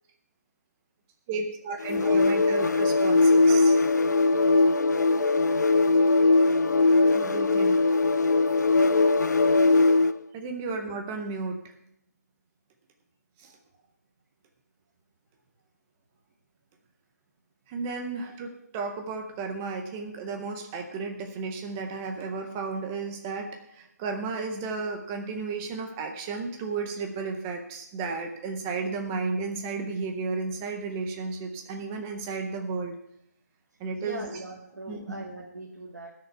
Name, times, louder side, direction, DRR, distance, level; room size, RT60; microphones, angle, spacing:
voice 1, 1.3-3.8 7.1-7.8 10.3-11.6 13.4-13.5 17.7-23.5 23.7-33.0 33.8-34.3 34.9-35.2, right 4 dB, 10° right, 4 dB, 0.5 m, -33 dB
sound 1, 1.8-10.2, left 3 dB, 80° left, 0.5 m, -21 dB
voice 2, 34.0-36.1, right 2 dB, 75° right, -3 dB, 2.3 m, -40 dB
18.5 x 6.6 x 4.5 m, 0.78 s
hypercardioid pair, 175°, 9 cm